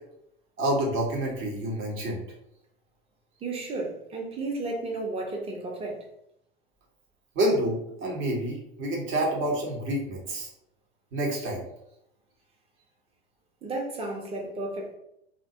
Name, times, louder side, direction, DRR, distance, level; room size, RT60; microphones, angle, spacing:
voice 1, 0.6-2.2 7.3-10.5 11.1-11.6, right 1 dB, 40° right, -2 dB, 1.0 m, -28 dB
voice 2, 3.4-6.1 13.6-15.0, right 2 dB, 20° right, 0 dB, 0.7 m, -33 dB
2.5 x 2.1 x 2.7 m, 0.77 s
figure-of-eight pair, 80°, 30 cm